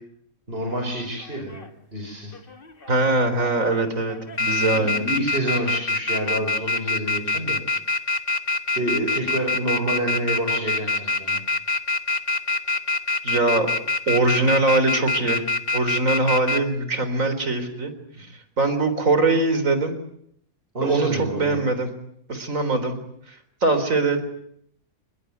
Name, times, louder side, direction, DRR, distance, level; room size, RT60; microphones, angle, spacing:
voice 1, 0.5-1.6 1.9-2.3 4.7-7.6 8.7-11.4 20.7-21.6, right 1 dB, 45° right, 0 dB, 6.5 m, -28 dB
sound 1, 1.3-1.7 2.3-3.0 3.4-3.8 4.1-16.6, left 2 dB, 40° left, 2.0 m, -24 dB
voice 2, 2.9-5.1 13.2-13.7 14.1-15.4 15.7-17.9 18.6-19.9 20.8-21.9 22.3-23.0 23.6-24.2, right 2 dB, 70° right, 10 dB, 4.4 m, -22 dB
27.0 x 22.0 x 9.5 m, 0.72 s
omnidirectional pair, 1.4 m